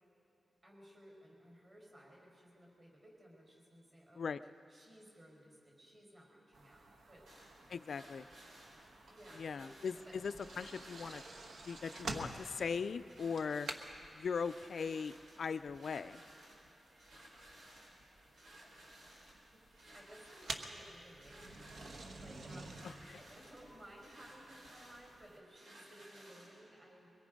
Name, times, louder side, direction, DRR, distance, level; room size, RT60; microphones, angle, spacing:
voice 1, 0.6-4.3 4.7-7.3 8.7-8.8 9.0-9.7 9.9-10.2 19.9-22.9 23.1-27.1, equal, 30° right, -1 dB, 4.8 m, -58 dB
sound 1, 6.5-25.4, right 2 dB, 60° right, 1.3 m, -51 dB
sound 2, 7.3-26.6, right 1 dB, 85° right, 5.2 m, -59 dB
voice 2, 7.7-8.3 9.4-11.2 11.6-13.7 14.1-16.2 22.8-23.2, left 5 dB, 55° left, 11 dB, 0.4 m, -39 dB
23.0 x 22.0 x 5.2 m, 2.7 s
wide cardioid pair, 165°, 0 cm